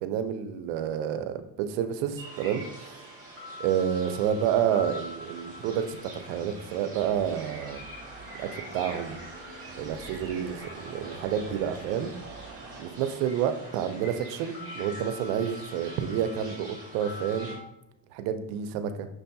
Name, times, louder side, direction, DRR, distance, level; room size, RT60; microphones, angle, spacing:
voice 1, 0.0-3.1 3.6-7.9 8.4-9.2 9.8-12.1 12.8-17.6 18.1-19.1, right 9 dB, 75° right, 9 dB, 0.6 m, -29 dB
sound 1, 2.2-17.6, equal, 10° right, 1.1 m, -44 dB
sound 2, 5.1-12.8, right 3 dB, 25° right, 0.4 m, -47 dB
6.2 x 2.7 x 2.2 m, 0.84 s
cardioid pair, 150°, 49 cm